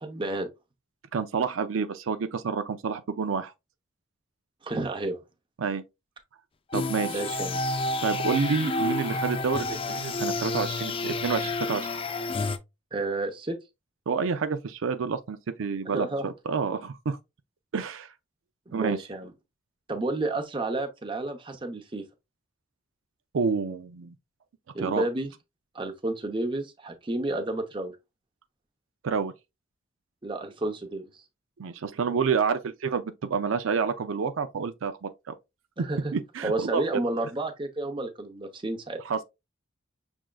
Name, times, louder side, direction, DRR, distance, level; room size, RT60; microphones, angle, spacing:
voice 1, 0.0-0.5 4.6-5.2 7.1-7.6 12.9-13.6 15.8-16.3 18.7-19.3 19.9-22.0 24.7-25.3 25.7-27.9 30.2-31.1 35.8-36.1 36.4-39.0, right 2 dB, 25° right, 0.7 m, -31 dB
voice 2, 1.1-3.5 5.6-5.8 6.7-7.2 8.0-11.9 14.1-17.2 17.7-18.1 18.7-19.0 23.3-24.1 24.8-25.0 29.0-29.3 31.6-35.3 36.1-36.8 39.1-39.2, right 5 dB, 80° right, 0.5 m, -29 dB
sound 1, 6.7-12.6, left 2 dB, 25° left, 0.4 m, -29 dB
6.2 x 3.5 x 2.3 m
head